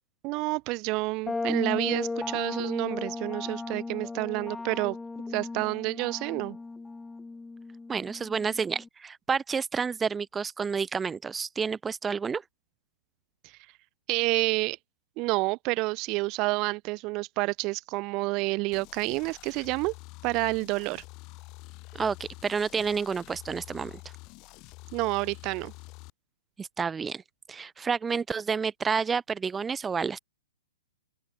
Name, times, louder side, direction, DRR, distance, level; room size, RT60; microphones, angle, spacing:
voice 1, 0.2-5.0 5.3-6.6 13.4-13.6 14.1-14.8 15.2-19.9 20.2-21.0 24.9-25.7, right 24 dB, 30° right, 3.5 m, -29 dB
sound 1, 1.3-8.9, left 3 dB, 5° left, 2.2 m, -36 dB
voice 2, 7.9-12.4 21.9-23.9 26.6-27.2 27.5-30.2, right 5 dB, 10° right, 4.4 m, -30 dB
sound 2, 18.7-26.1, left 25 dB, 35° left, 7.6 m, -47 dB
open air
hypercardioid pair, 140°, 0 cm